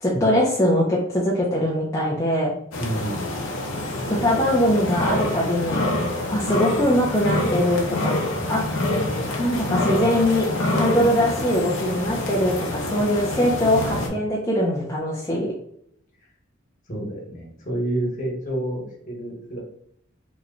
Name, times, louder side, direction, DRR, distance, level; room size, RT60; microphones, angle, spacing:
voice 1, 0.0-2.5 4.1-5.8 6.3-8.2 8.5-8.6 9.4-10.5 10.7-15.5, equal, 15° left, -6 dB, 0.5 m, -22 dB
sound 1, 2.7-14.1, left 1 dB, 75° left, 0.7 m, -26 dB
voice 2, 2.8-3.2 16.2-16.3 16.9-19.6, right 1 dB, 40° left, -2 dB, 1.2 m, -29 dB
3.0 x 2.2 x 3.7 m, 0.69 s
head